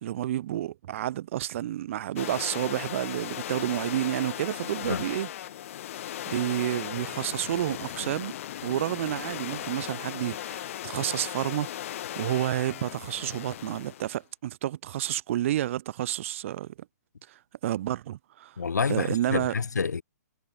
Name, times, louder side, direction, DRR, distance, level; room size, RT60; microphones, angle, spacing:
voice 1, 0.0-5.3 6.3-8.3 8.6-11.7 12.1-16.7 17.3-17.4 17.6-18.6 18.9-19.5, right 13 dB, 50° right, 1.4 m, -30 dB
sound 1, 2.2-14.2, left 12 dB, 50° left, 4.4 m, -37 dB
voice 2, 18.6-20.0, left 5 dB, 85° left, 2.0 m, -28 dB
hypercardioid pair, 140°, 9 cm